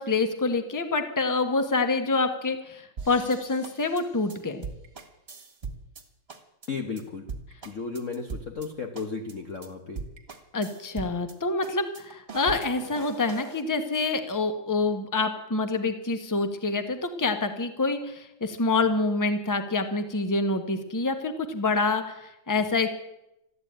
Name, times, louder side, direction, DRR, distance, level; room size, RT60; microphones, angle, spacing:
voice 1, 0.0-4.7 10.5-22.9, left 3 dB, 10° left, 8 dB, 1.0 m, -27 dB
sound 1, 3.0-6.0 6.3-6.7 7.0-7.1 7.3-8.7 8.9-9.3 9.6-9.7 9.9-11.3 11.6-13.6, right 4 dB, 30° right, 1.9 m, -40 dB
voice 2, 6.7-7.3 7.6-10.0, left 4 dB, 45° left, 4 dB, 1.3 m, -34 dB
14.0 x 11.0 x 8.8 m, 0.86 s
omnidirectional pair, 2.2 m